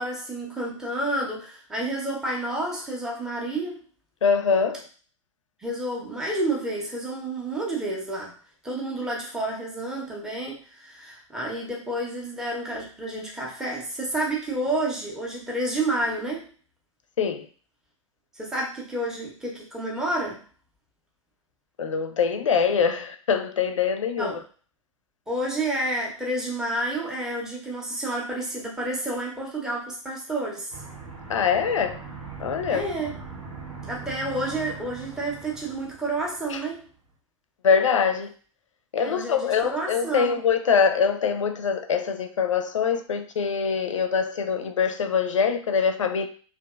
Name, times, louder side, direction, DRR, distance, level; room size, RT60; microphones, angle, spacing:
voice 1, 0.0-3.8 5.6-8.3 8.6-16.4 18.3-20.4 24.2-24.4 25.3-30.7 32.7-33.2 33.9-36.9 39.0-40.4, right 1 dB, 5° right, -3 dB, 0.6 m, -30 dB
voice 2, 4.2-4.9 17.2-17.5 21.8-24.4 31.3-32.0 32.4-32.9 36.5-36.6 37.6-38.3 38.9-46.3, left 6 dB, 70° left, 8 dB, 0.4 m, -23 dB
Aircraft, 30.7-36.8, right 4 dB, 90° right, 1.1 m, -41 dB
2.7 x 2.4 x 2.2 m, 0.41 s
figure-of-eight pair, 100°, 17 cm